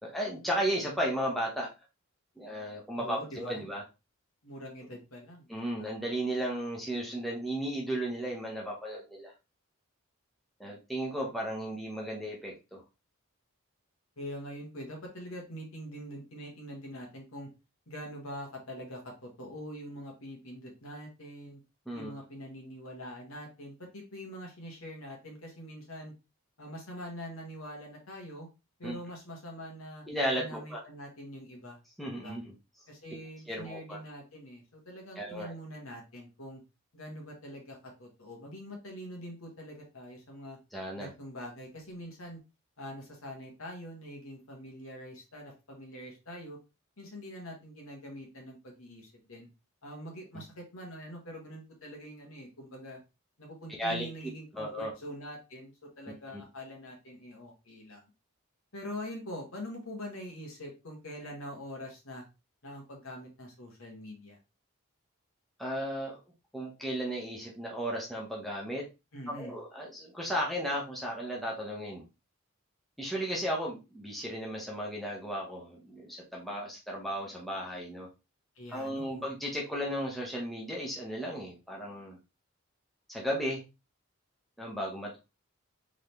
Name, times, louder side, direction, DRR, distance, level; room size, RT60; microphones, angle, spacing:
voice 1, 0.0-1.7 2.4-3.8 5.5-9.3 10.6-12.8 21.9-22.1 28.8-29.0 30.1-30.8 32.0-32.5 33.5-34.0 35.2-35.5 40.7-41.1 50.3-50.4 53.8-54.1 54.5-54.9 56.3-56.4 65.6-66.2 66.5-68.8 69.4-72.0 73.0-78.1 78.7-82.2 83.1-83.6 84.6-85.2, equal, ahead, -3 dB, 1.1 m, -35 dB
voice 2, 2.9-3.7 4.4-5.5 5.8-5.9 14.2-17.5 17.9-21.6 21.9-26.1 26.6-28.5 28.8-30.0 30.3-31.8 32.1-32.4 32.9-36.6 36.9-40.6 41.0-42.4 42.8-46.6 47.0-49.5 49.8-53.0 53.4-58.1 58.7-62.3 62.6-64.4 69.1-69.5 78.5-79.2, equal, 70° left, 1 dB, 1.7 m, -44 dB
3.9 x 3.9 x 3.3 m, 0.27 s
head